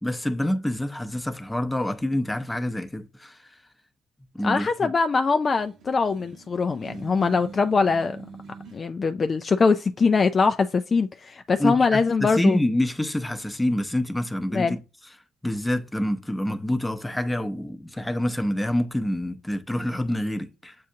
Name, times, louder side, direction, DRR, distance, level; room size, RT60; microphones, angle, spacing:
voice 1, 0.0-3.4 4.4-4.9 11.6-14.8 15.4-20.8, left 1 dB, 10° left, 0.7 m, -27 dB
voice 2, 4.4-8.2 8.7-12.6 14.5-14.8, left 4 dB, 35° left, 0.3 m, -22 dB
sound 1, 5.5-8.8, right 5 dB, 65° right, 1.0 m, -43 dB
7.4 x 2.5 x 2.7 m
supercardioid pair, 70°, 0 cm